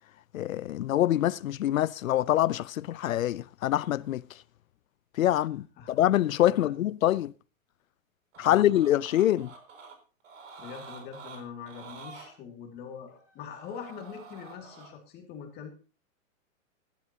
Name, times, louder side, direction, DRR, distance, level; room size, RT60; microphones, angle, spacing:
voice 1, 0.3-4.2 5.1-7.3 8.4-9.5, left 13 dB, 80° left, 0.6 m, -25 dB
sound 1, 8.3-9.9 10.2-12.3 13.1-14.9, right 4 dB, 65° right, 4.1 m, -48 dB
voice 2, 8.4-8.9 10.6-15.7, left 7 dB, 25° left, 2.2 m, -43 dB
19.0 x 11.5 x 2.8 m
hypercardioid pair, 145°, 41 cm